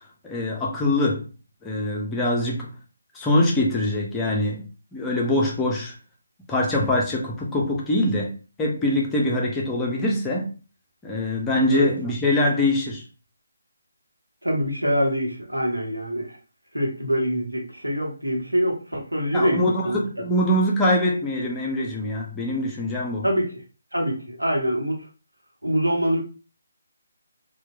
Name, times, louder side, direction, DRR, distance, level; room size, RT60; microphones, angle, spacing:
voice 1, 0.2-1.3 1.6-2.7 3.1-4.6 4.9-5.9 6.5-8.3 8.6-10.5 11.0-13.0 19.3-23.3, left 1 dB, 10° left, -2 dB, 0.5 m, -23 dB
voice 2, 14.4-16.4 16.7-20.0 23.2-23.6 23.9-25.0 25.6-26.2, equal, 90° right, -1 dB, 0.9 m, -24 dB
2.8 x 2.1 x 2.3 m, 0.35 s
figure-of-eight pair, 150°, 0 cm